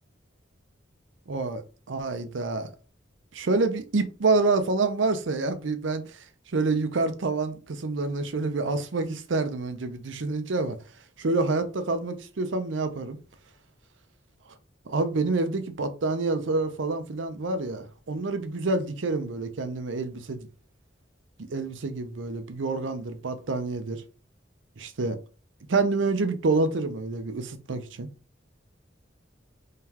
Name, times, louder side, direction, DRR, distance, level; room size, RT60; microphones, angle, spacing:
voice 1, 1.3-1.6 1.9-2.7 3.3-6.2 6.5-10.8 11.2-13.2 14.9-20.5 21.4-24.0 24.8-25.2 25.7-28.1, right 3 dB, 80° right, 0.6 m, -27 dB
3.8 x 3.2 x 2.9 m
head